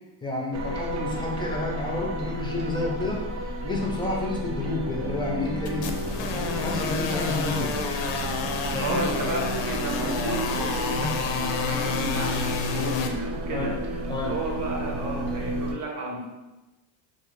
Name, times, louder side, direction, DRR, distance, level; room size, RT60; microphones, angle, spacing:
voice 1, 0.2-6.0 6.6-7.8 8.7-9.0 10.9-11.1 13.5-13.8 14.1-14.4, left 3 dB, 10° left, -2 dB, 0.5 m, -30 dB
sound 1, 0.5-15.7, right 1 dB, 65° right, 0.5 m, -32 dB
sound 2, 5.7-13.1, left 5 dB, 75° left, 0.5 m, -30 dB
voice 2, 8.8-16.3, right 1 dB, 45° right, -1 dB, 0.9 m, -33 dB
2.4 x 2.4 x 3.1 m, 1.1 s
cardioid pair, 105°, 44 cm